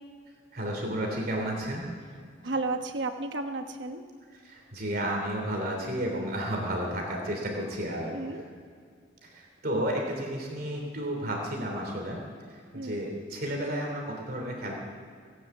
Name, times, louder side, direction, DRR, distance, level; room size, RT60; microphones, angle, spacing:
voice 1, 0.5-1.8 2.4-2.5 4.3-8.5 9.2-12.2 12.5-14.7, right 1 dB, 50° right, 1 dB, 3.0 m, -32 dB
voice 2, 2.4-4.0 8.1-8.4 12.7-13.1, right 2 dB, 65° right, 6 dB, 1.2 m, -33 dB
17.5 x 9.7 x 8.2 m, 2.1 s
head